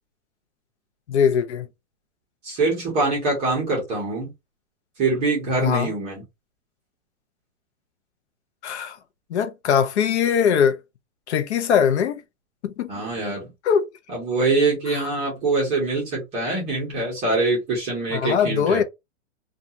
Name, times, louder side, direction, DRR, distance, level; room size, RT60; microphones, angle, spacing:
voice 1, 1.1-1.7 5.6-5.9 8.6-9.0 9.3-10.8 11.3-12.2 12.6-12.9 13.6-13.9 15.0-15.1 18.1-18.8, left 7 dB, 70° left, 0.6 m, -21 dB
voice 2, 2.4-4.3 5.0-6.2 12.9-13.5 14.1-18.8, right 3 dB, 15° right, 0.9 m, -24 dB
2.5 x 2.4 x 2.7 m
supercardioid pair, 175°, 35 cm